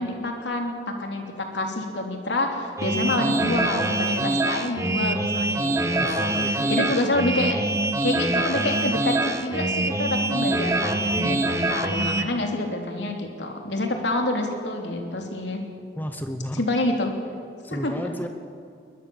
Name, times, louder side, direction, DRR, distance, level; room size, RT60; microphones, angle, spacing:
voice 1, 0.0-7.6 8.0-15.6 16.5-17.1 17.7-17.9, left 2 dB, 80° left, 2 dB, 3.3 m, -27 dB
sound 1, 2.8-12.2, right 2 dB, 15° right, 1.1 m, -24 dB
voice 2, 5.9-7.2 16.0-16.6 17.6-18.3, equal, 10° left, 6 dB, 0.9 m, -33 dB
22.0 x 20.0 x 7.2 m, 2.4 s
head